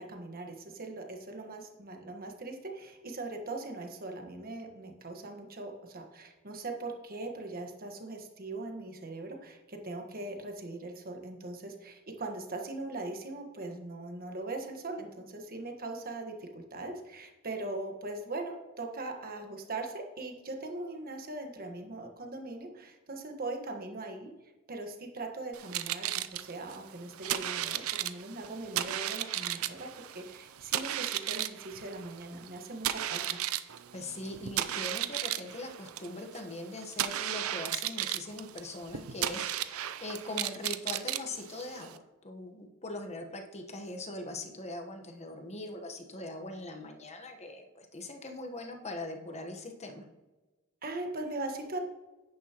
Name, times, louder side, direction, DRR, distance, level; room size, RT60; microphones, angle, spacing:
voice 1, 0.0-24.3 24.7-33.4 50.8-51.8, right 2 dB, 45° right, 3 dB, 1.4 m, -40 dB
sound 1, 25.5-42.0, right 12 dB, 75° right, 0.5 m, -35 dB
voice 2, 33.9-42.0 42.2-50.1, left 2 dB, 30° left, 4 dB, 1.2 m, -41 dB
10.0 x 9.1 x 3.0 m, 1.1 s
head